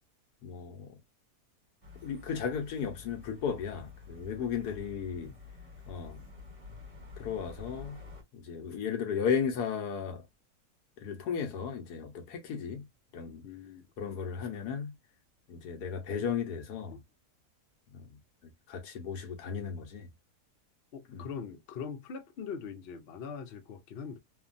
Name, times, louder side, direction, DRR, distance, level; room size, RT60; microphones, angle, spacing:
voice 1, 0.4-1.0 2.0-5.3 5.9-6.2 7.2-8.0 8.3-10.2 11.0-12.9 13.1-13.4 14.0-14.9 15.5-17.0 17.9-20.1 21.1-21.3, left 7 dB, 85° left, 1.4 m, -35 dB
sound 1, 1.8-8.2, left 5 dB, 25° right, 1.1 m, -49 dB
voice 2, 13.4-13.9 20.9-24.2, left 6 dB, 55° left, 0.7 m, -42 dB
3.2 x 2.2 x 2.5 m
omnidirectional pair, 1.6 m